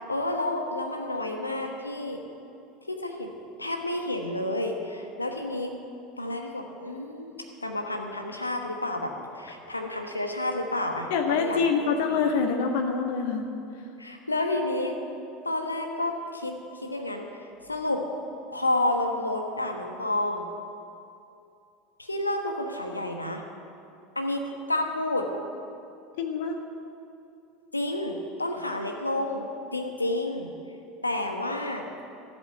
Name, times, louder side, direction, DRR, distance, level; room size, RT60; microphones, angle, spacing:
voice 1, 0.0-2.2 2.9-3.3 3.6-5.7 6.2-11.6 12.1-12.2 14.0-15.0 15.4-18.1 18.5-20.5 22.0-23.4 24.1-25.3 27.7-30.5 31.0-31.8, left 1 dB, 85° left, 4 dB, 1.2 m, -30 dB
voice 2, 11.1-13.4 26.2-26.5, left 5 dB, 60° left, 4 dB, 1.4 m, -25 dB
13.0 x 8.0 x 8.9 m, 2.6 s
figure-of-eight pair, 75°, 0 cm